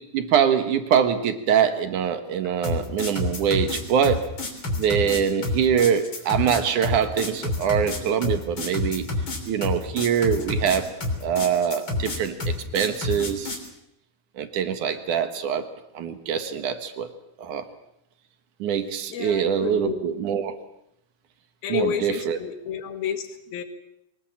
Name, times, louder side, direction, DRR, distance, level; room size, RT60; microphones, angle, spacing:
voice 1, 0.1-4.2 4.8-9.1 9.5-10.9 11.2-13.6 14.4-15.7 15.9-17.1 17.4-17.7 18.6-20.5 21.7-22.4, right 8 dB, 60° right, 8 dB, 2.6 m, -24 dB
sound 1, 2.6-13.7, left 2 dB, 30° left, 3.8 m, -28 dB
voice 2, 19.1-20.1 21.6-23.6, left 9 dB, 70° left, 8 dB, 3.6 m, -30 dB
24.0 x 20.5 x 7.4 m, 0.80 s
omnidirectional pair, 4.7 m